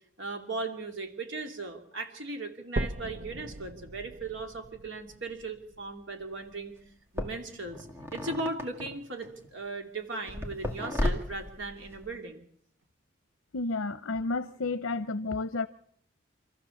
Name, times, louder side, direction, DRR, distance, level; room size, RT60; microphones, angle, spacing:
voice 1, 0.2-6.7 7.1-12.4, right 3 dB, 65° right, 2.7 m, -37 dB
sound 1, 2.8-6.8 7.3-7.4 8.0-8.1 8.4-8.5 9.3-9.4, right 2 dB, 45° right, 0.8 m, -39 dB
sound 2, 6.3-6.4 7.2-9.5 10.3-12.2, left 1 dB, 10° right, 2.0 m, -34 dB
voice 2, 13.5-15.7, left 3 dB, 75° left, 0.7 m, -31 dB
26.5 x 14.0 x 7.1 m
head